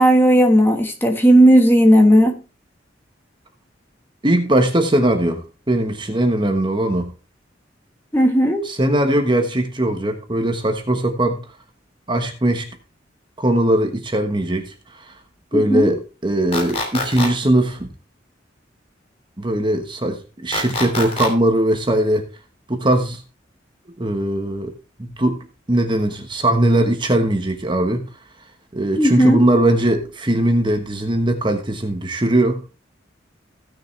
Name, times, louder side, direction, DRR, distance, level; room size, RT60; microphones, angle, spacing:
voice 1, 0.0-2.4 8.1-8.6 15.5-16.0 29.0-29.4, right 1 dB, 10° left, 4 dB, 1.4 m, -14 dB
voice 2, 4.2-7.1 8.6-11.4 12.1-12.7 13.4-15.1 15.5-17.9 19.4-22.3 22.7-23.2 24.0-24.7 25.0-25.4 25.7-28.0 28.7-32.6, right 1 dB, 25° right, 5 dB, 1.2 m, -20 dB
sound 1, 16.5-17.3 20.5-21.3, left 2 dB, 35° left, 3.0 m, -24 dB
16.0 x 6.5 x 3.3 m, 0.33 s
head